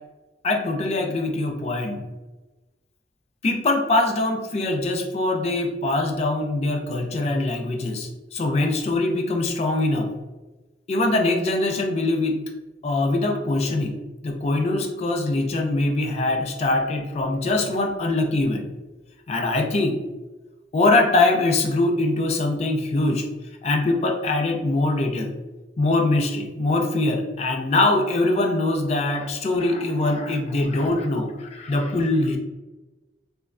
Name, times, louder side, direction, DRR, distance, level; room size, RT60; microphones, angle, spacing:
voice 1, 0.4-2.0 3.4-10.1 10.9-12.4 12.8-13.9 14.2-18.7 19.3-20.0 20.7-23.3 23.6-25.3 25.8-32.4, left 2 dB, 35° left, 3 dB, 0.3 m, -23 dB
3.0 x 2.2 x 2.4 m, 1.1 s
head